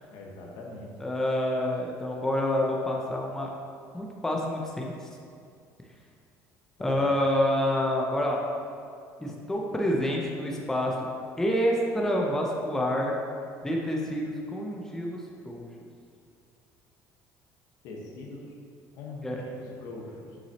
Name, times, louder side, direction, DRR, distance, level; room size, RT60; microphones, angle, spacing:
voice 1, 0.1-0.9 6.8-7.1 17.8-18.4 19.0-20.4, left 2 dB, 70° left, -1 dB, 1.2 m, -42 dB
voice 2, 1.0-3.5 3.9-4.9 6.8-8.4 9.2-10.9 11.4-13.2 13.6-15.2 15.4-15.7 19.2-19.4, left 1 dB, 5° left, -1 dB, 0.6 m, -27 dB
7.2 x 6.1 x 2.9 m, 2.3 s
cardioid pair, 145°, 7 cm